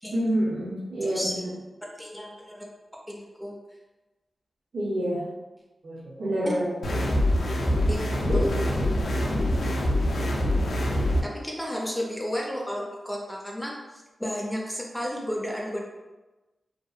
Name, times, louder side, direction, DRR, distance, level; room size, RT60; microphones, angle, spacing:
voice 1, 0.1-1.4 4.7-5.2 5.8-6.7 8.3-8.4, right 1 dB, 60° right, -7 dB, 0.6 m, -27 dB
voice 2, 1.0-1.4 2.0-2.7 3.1-3.6 6.5-6.6 7.9-8.0 8.3-8.7 11.2-13.7 14.2-15.9, equal, 5° left, -2 dB, 0.4 m, -32 dB
sound 1, 6.8-11.2, left 1 dB, 80° left, 0.4 m, -24 dB
2.6 x 2.0 x 2.3 m, 1.1 s
wide cardioid pair, 90°, 0 cm